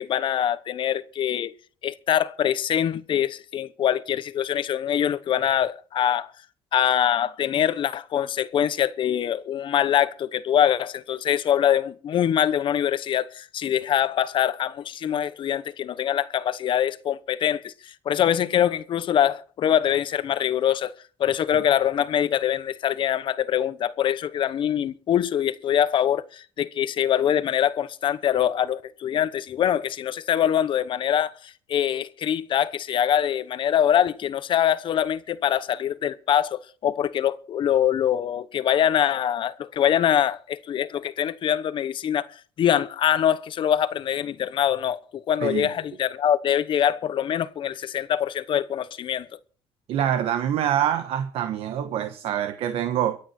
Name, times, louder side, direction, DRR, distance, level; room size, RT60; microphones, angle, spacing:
voice 1, 0.0-1.5 1.8-6.3 6.7-20.9 21.2-42.3 42.6-49.3, left 10 dB, 55° left, 1.0 m, -24 dB
voice 2, 49.9-53.2, right 10 dB, 75° right, 1.2 m, -25 dB
23.5 x 8.6 x 4.4 m
cardioid pair, 120°, 10 cm